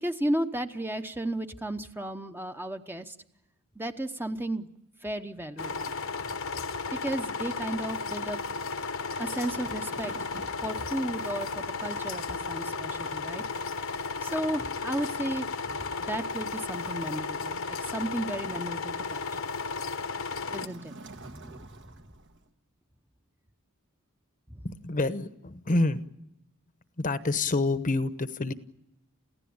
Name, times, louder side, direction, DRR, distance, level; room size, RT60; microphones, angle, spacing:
voice 1, 0.0-3.2 3.8-4.7 5.0-5.9 6.6-6.7 7.0-8.4 8.8-10.1 10.6-13.4 14.2-19.4 20.5-21.7, right 1 dB, 10° right, 7 dB, 0.9 m, -34 dB
sound 1, 5.6-20.7, left 4 dB, 65° left, 1.1 m, -34 dB
Waves surf, 8.8-22.5, right 3 dB, 55° right, 1.4 m, -52 dB
voice 2, 24.6-26.0 27.0-28.5, left 2 dB, 40° left, 12 dB, 1.0 m, -27 dB
29.0 x 16.0 x 8.7 m, 0.86 s
head